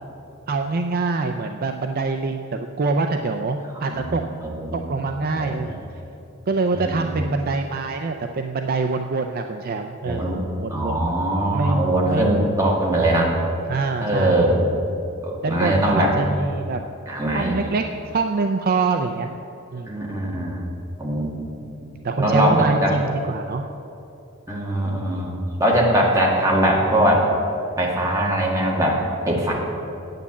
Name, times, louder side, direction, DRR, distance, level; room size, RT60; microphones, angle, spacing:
voice 1, 0.5-4.2 4.7-5.8 6.5-11.1 11.5-12.3 13.7-14.6 15.4-16.8 17.3-19.4 19.7-19.9 22.0-23.6, right 3 dB, 45° right, 5 dB, 0.4 m, -25 dB
voice 2, 3.8-4.8 5.4-5.7 6.7-7.4 10.0-10.4 10.7-13.3 14.0-14.8 15.2-16.1 17.1-17.5 19.9-20.6 21.0-21.4 22.2-22.9 24.5-25.3 25.6-27.3 27.8-29.5, right 1 dB, 15° right, -3 dB, 1.8 m, -21 dB
9.3 x 8.4 x 7.2 m, 2.9 s
head